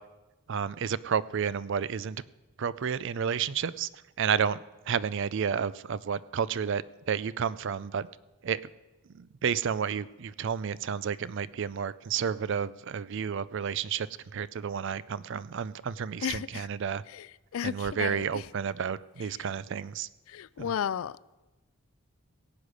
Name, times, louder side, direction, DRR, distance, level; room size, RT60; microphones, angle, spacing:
voice 1, 0.5-2.2 2.6-3.9 4.2-8.1 8.4-8.6 9.1-14.1 14.3-17.0 17.6-20.1 20.6-20.7, right 7 dB, 55° right, 0.4 m, -31 dB
voice 2, 16.2-16.7 17.1-17.3 17.5-18.4 20.3-21.2, left 8 dB, 70° left, 0.3 m, -33 dB
17.0 x 8.3 x 6.3 m
head